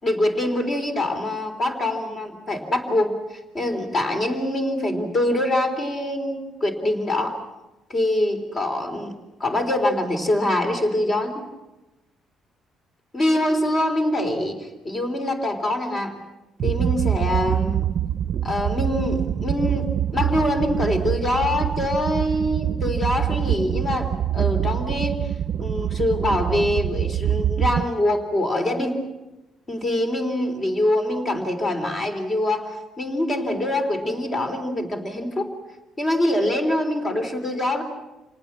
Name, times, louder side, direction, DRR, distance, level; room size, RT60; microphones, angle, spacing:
voice 1, 0.0-3.1 3.5-7.4 7.9-9.1 9.4-11.4 13.1-16.1 16.6-17.9 18.4-25.2 25.6-29.0 29.7-35.5 36.0-37.8, left 1 dB, 25° left, 6 dB, 3.7 m, -24 dB
sound 1, 16.6-27.8, right 10 dB, 50° right, 0.7 m, -25 dB
28.5 x 19.0 x 7.5 m, 1.0 s
cardioid pair, 145°, 0 cm